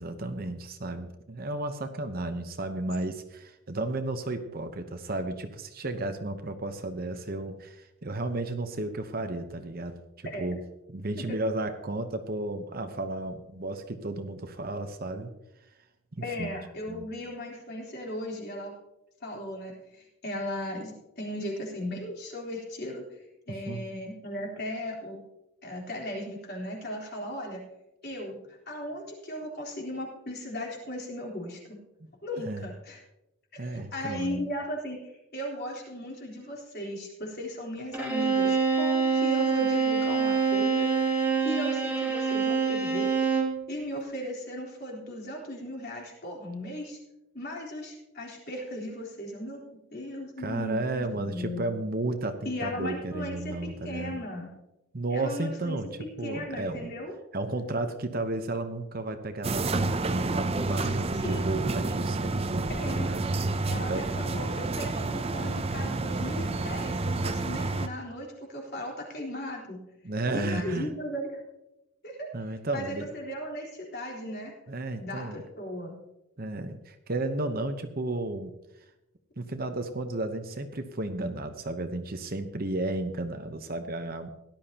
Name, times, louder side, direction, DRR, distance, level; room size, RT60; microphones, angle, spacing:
voice 1, 0.0-10.6 10.9-15.3 16.2-16.5 16.9-17.1 23.5-23.8 32.5-32.7 33.6-34.5 50.4-54.2 54.9-55.9 56.2-56.9 57.3-64.1 70.0-70.9 72.3-73.1 74.7-75.4 76.4-78.6 79.4-84.3, right 2 dB, 45° right, 8 dB, 0.9 m, -33 dB
voice 2, 16.2-18.8 19.2-23.2 23.5-25.2 25.6-27.6 28.0-28.4 28.7-31.8 32.2-33.0 33.5-40.9 41.4-43.1 43.7-47.0 47.3-51.7 52.4-54.5 55.1-55.9 56.2-57.1 61.2-61.7 62.7-63.1 63.6-69.8 70.3-71.4 72.0-72.3 72.7-74.5 74.9-76.0, equal, 50° left, -1 dB, 3.7 m, -37 dB
Bowed string instrument, 37.9-43.6, right 5 dB, 10° right, 2.2 m, -25 dB
sound 1, 59.4-67.9, right 2 dB, 25° right, 0.5 m, -29 dB
17.5 x 12.0 x 2.9 m, 0.93 s
head